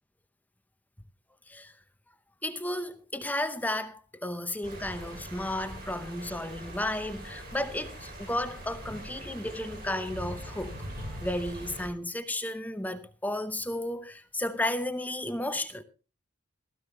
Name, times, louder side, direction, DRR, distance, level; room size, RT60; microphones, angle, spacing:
voice 1, 2.4-10.7 11.1-15.8, left 1 dB, 10° left, 0.7 m, -33 dB
sound 1, 4.6-11.9, equal, 50° right, 7.4 m, -42 dB
16.5 x 14.0 x 3.2 m
head